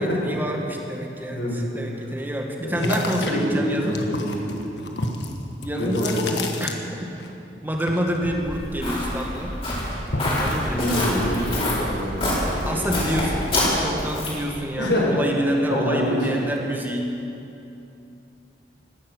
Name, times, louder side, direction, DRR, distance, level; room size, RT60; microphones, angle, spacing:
voice 1, 0.0-4.0 5.6-6.2 6.6-7.1 7.6-9.6 10.4-11.3 12.7-17.1, equal, 10° right, 1 dB, 1.8 m, -27 dB
sound 1, 2.8-7.3 7.5-9.2 9.5-10.5, left 2 dB, 85° left, 1.5 m, -30 dB
voice 2, 3.2-4.6 5.8-6.4 10.3-13.0 14.8-15.1 15.7-16.2, left 1 dB, 70° left, -3 dB, 4.4 m, -26 dB
Walk footsteps, 8.2-14.5, left 1 dB, 35° left, 4.6 m, -26 dB
17.0 x 12.0 x 6.3 m, 2.8 s
head